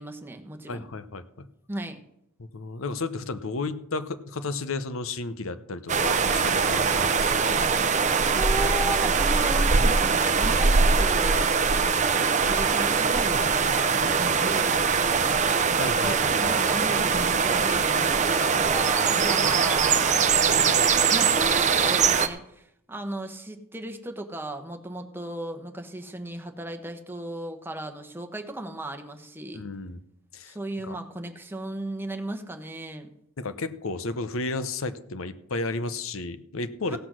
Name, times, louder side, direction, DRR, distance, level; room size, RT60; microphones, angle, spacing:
voice 1, 0.0-0.8 1.7-2.0 8.3-15.4 16.0-29.6 30.5-33.1 36.9-37.0, right 1 dB, 10° right, 4 dB, 1.1 m, -36 dB
voice 2, 0.7-1.5 2.4-7.5 15.7-16.5 29.5-30.0 30.3-30.6 30.8-31.0 33.4-37.0, left 3 dB, 70° left, 13 dB, 0.8 m, -33 dB
sound 1, 5.9-22.3, right 5 dB, 35° right, 0.7 m, -22 dB
16.0 x 6.1 x 6.2 m, 0.75 s
head